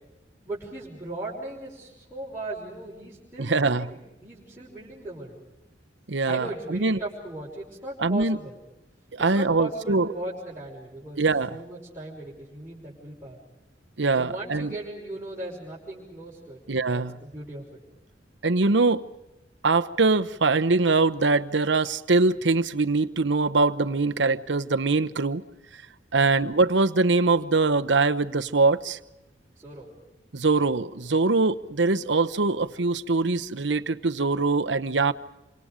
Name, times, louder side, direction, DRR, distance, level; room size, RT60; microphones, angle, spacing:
voice 1, 0.5-5.4 6.3-8.6 9.2-13.4 14.1-16.6 16.9-17.8 29.6-29.9, right 2 dB, 15° right, -8 dB, 5.7 m, -38 dB
voice 2, 3.4-3.9 6.1-7.0 8.0-8.4 9.2-10.1 11.2-11.6 14.0-14.7 16.7-17.2 18.4-19.0 19.6-25.4 26.1-29.0 30.3-35.1, right 3 dB, 80° right, 10 dB, 1.0 m, -23 dB
28.0 x 26.5 x 5.1 m, 0.97 s
head